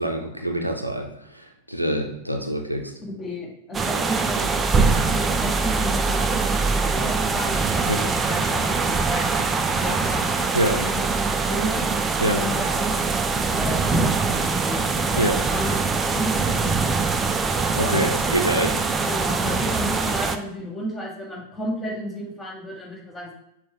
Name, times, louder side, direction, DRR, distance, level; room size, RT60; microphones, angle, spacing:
voice 1, 0.0-2.9 7.9-8.0 10.5-10.8 12.2-12.4 15.1-15.4 17.7-18.8, right 1 dB, 90° right, 3 dB, 0.5 m, -25 dB
voice 2, 3.0-9.3 9.8-11.8 12.3-12.9 13.5-14.8 15.1-16.9 17.8-18.4 19.1-23.3, equal, 20° left, -3 dB, 1.5 m, -32 dB
sound 1, 3.7-20.4, right 4 dB, 15° right, 0.3 m, -23 dB
6.0 x 2.3 x 3.6 m, 0.81 s
figure-of-eight pair, 90°, 0 cm